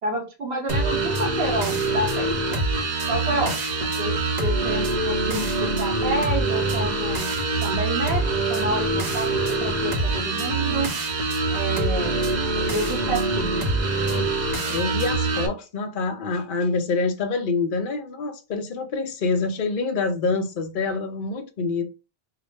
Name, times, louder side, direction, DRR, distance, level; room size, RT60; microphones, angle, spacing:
voice 1, 0.0-2.6 3.1-7.3 7.6-10.9 11.5-13.7, right 1 dB, 80° right, 1.4 m, -29 dB
sound 1, 0.7-15.5, right 2 dB, 45° right, 0.8 m, -24 dB
voice 2, 14.7-21.9, left 4 dB, 55° left, 0.9 m, -26 dB
4.7 x 2.0 x 3.3 m
omnidirectional pair, 1.1 m